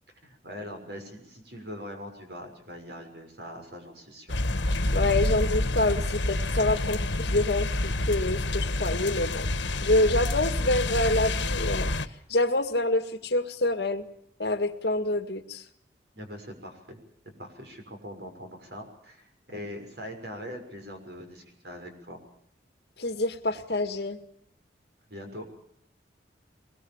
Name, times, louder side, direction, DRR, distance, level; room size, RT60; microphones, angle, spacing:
voice 1, 0.2-4.4 16.1-17.0 17.4-22.2 25.1-25.5, equal, 65° right, 4 dB, 6.4 m, -42 dB
sound 1, 4.3-12.1, left 2 dB, 85° left, 1.5 m, -28 dB
voice 2, 4.9-9.5 9.8-11.9 12.3-14.1 14.4-15.6 23.0-24.2, left 2 dB, 65° left, 9 dB, 1.9 m, -27 dB
23.0 x 21.5 x 7.3 m, 0.70 s
head